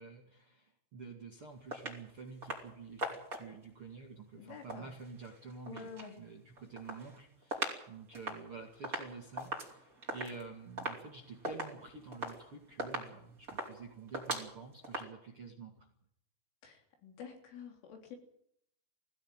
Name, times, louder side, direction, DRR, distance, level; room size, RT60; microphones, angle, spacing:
voice 1, 0.0-15.9, right 4 dB, 45° right, 2 dB, 1.9 m, -49 dB
sound 1, 1.7-2.0 2.4-2.7 3.0-3.6 4.5-6.1 6.5-7.8 8.1-15.0, right 1 dB, 20° right, 3.8 m, -41 dB
voice 2, 4.4-4.9 5.7-6.2 16.6-18.2, left 6 dB, 70° left, 4 dB, 5.8 m, -49 dB
20.0 x 16.0 x 9.1 m, 0.71 s
omnidirectional pair, 6.0 m